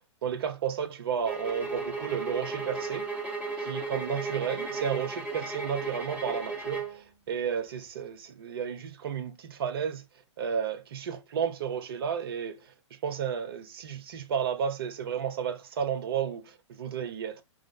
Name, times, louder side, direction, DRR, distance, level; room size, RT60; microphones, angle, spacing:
voice 1, 0.2-3.1 3.6-10.0 10.4-12.7 13.0-17.4, right 7 dB, 50° right, 0.6 m, -32 dB
sound 1, 1.2-7.0, right 3 dB, 10° right, 0.9 m, -35 dB
4.8 x 2.0 x 3.4 m
figure-of-eight pair, 110°, 16 cm